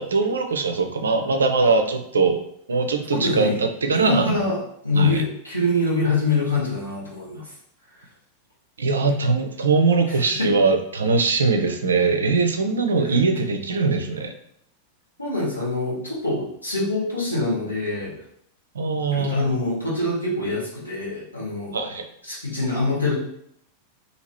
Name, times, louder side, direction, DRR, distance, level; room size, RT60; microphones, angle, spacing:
voice 1, 0.0-2.4 2.7-4.4 4.9-5.2 8.8-14.3 18.7-19.5 21.7-22.0, right 4 dB, 70° right, 6 dB, 0.4 m, -21 dB
voice 2, 3.1-3.6 3.9-7.5 10.1-10.5 13.0-13.1 15.2-18.1 19.1-21.7 22.2-23.2, left 2 dB, 85° left, -7 dB, 1.3 m, -25 dB
2.8 x 2.8 x 2.9 m, 0.72 s
figure-of-eight pair, 90°, 0 cm